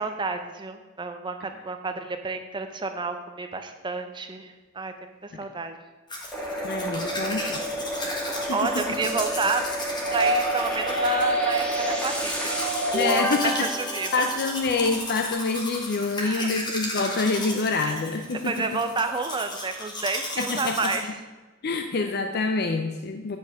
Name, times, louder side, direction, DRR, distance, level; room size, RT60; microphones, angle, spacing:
voice 1, 0.0-4.9 5.2-5.7 8.5-9.6 10.1-12.6 13.4-14.3 16.2-16.5 17.7-18.0 18.4-21.1, right 4 dB, 25° right, 7 dB, 0.5 m, -30 dB
Domestic sounds home sounds, 6.1-21.0, left 1 dB, 20° left, 1.6 m, -35 dB
sound 1, 6.3-15.0, right 1 dB, 5° left, 1.5 m, -31 dB
voice 2, 6.6-7.6 8.5-8.8 12.9-13.7 14.1-18.8 20.4-20.9 21.6-23.4, left 3 dB, 50° left, 5 dB, 0.5 m, -26 dB
sound 2, 10.0-13.3 14.7-14.8, right 1 dB, 75° right, 1.3 m, -27 dB
9.1 x 5.4 x 6.3 m, 1.2 s
head